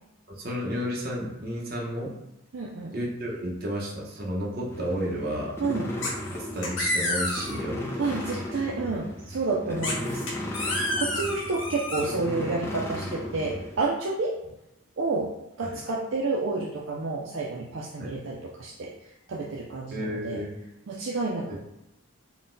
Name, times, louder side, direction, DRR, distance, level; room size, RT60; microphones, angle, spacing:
voice 1, 0.3-2.1 2.9-5.6 6.3-7.8 9.7-9.8 15.6-15.7 18.0-18.2 19.9-20.6 21.5-21.6, equal, 45° right, -3 dB, 0.9 m, -32 dB
voice 2, 2.5-2.9 5.6-5.9 8.0-10.3 11.0-14.4 15.0-18.9 19.3-20.5 20.9-21.6, right 3 dB, 65° right, -3 dB, 0.4 m, -30 dB
sound 1, 4.7-13.8, left 1 dB, 10° left, 0.4 m, -36 dB
sound 2, 6.0-6.4 6.6-7.6 9.8-12.1, left 1 dB, 65° left, 1.0 m, -29 dB
3.9 x 2.2 x 3.8 m, 0.92 s
head